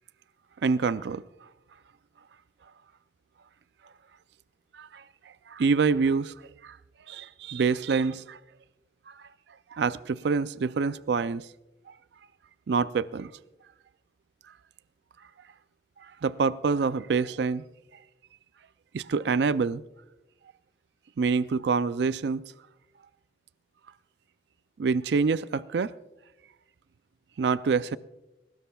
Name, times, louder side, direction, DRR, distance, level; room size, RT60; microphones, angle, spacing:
voice 1, 0.6-1.2 4.7-5.0 5.5-6.3 6.6-6.8 7.1-8.4 9.1-9.3 9.7-11.4 12.7-13.3 16.2-17.6 18.9-19.8 21.2-22.4 24.8-25.9 27.4-28.0, right 5 dB, 70° right, 0.4 m, -26 dB
21.5 x 19.5 x 2.3 m
head